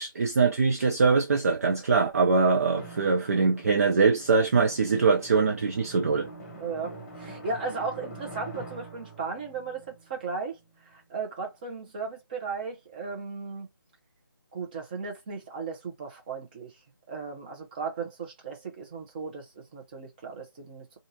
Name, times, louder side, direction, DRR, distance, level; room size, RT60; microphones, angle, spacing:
voice 1, 0.0-6.3, right 4 dB, 40° right, 0.4 m, -23 dB
Drum, 2.8-11.0, right 1 dB, 20° left, 0.9 m, -45 dB
voice 2, 6.6-10.6 10.9-13.7 14.5-16.7 17.1-20.9, right 4 dB, 25° right, 0.9 m, -36 dB
2.7 x 2.5 x 2.7 m
figure-of-eight pair, 155°, 12 cm